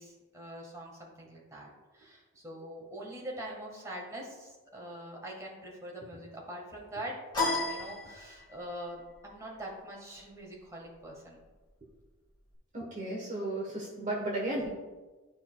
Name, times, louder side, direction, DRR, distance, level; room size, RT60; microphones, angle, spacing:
voice 1, 0.0-1.7 1.9-11.4, right 1 dB, 15° right, -2 dB, 1.5 m, -43 dB
sound 1, 7.3-8.7, left 2 dB, 20° left, 2.3 m, -32 dB
voice 2, 12.7-14.7, right 1 dB, 35° right, -3 dB, 1.2 m, -34 dB
12.5 x 4.7 x 2.3 m, 1.3 s
head